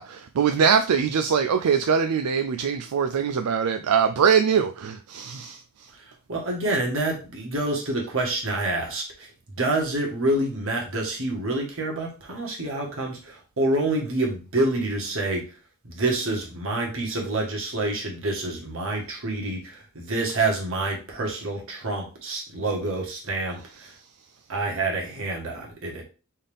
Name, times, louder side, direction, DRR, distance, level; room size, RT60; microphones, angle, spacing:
voice 1, 0.0-5.9, right 7 dB, 85° right, 0.4 m, -22 dB
voice 2, 5.9-9.3 9.6-15.5 15.8-23.9 24.5-26.0, right 2 dB, 65° right, 1.6 m, -27 dB
4.1 x 3.7 x 3.5 m
head